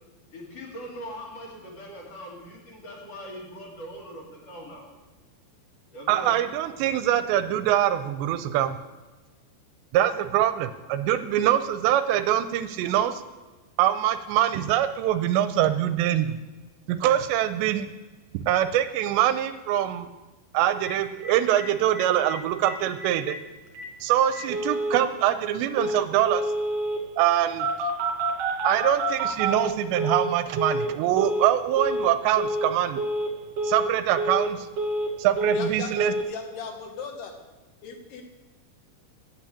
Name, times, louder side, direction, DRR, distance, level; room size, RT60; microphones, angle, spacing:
voice 1, 0.3-4.9 5.9-6.3, equal, 45° left, -2 dB, 2.6 m, -40 dB
voice 2, 6.1-8.8 9.9-13.2 13.8-16.4 16.9-17.9 18.3-20.1 20.5-23.4 24.0-26.5 27.2-27.7 28.6-33.0 33.6-34.7 35.2-36.1, right 11 dB, 85° right, 11 dB, 2.7 m, -24 dB
Telephone, 20.8-20.9 21.2-21.3 21.6-21.7 21.9-22.4 22.6-22.7 23.0-23.3 23.7-23.8 24.3-25.0 25.8-26.0 26.3-27.0 27.6-30.3 30.6-30.9 31.2-31.5 31.8-32.1 32.4-32.7 33.0-33.3 33.6-33.9 34.2-35.1 35.4-35.7 36.0-36.2, right 1 dB, 55° right, 2.9 m, -28 dB
voice 3, 35.5-35.9 36.3-37.3 37.8-38.2, left 6 dB, 70° left, 3 dB, 3.0 m, -37 dB
8.8 x 8.5 x 8.3 m, 1.2 s
omnidirectional pair, 5.1 m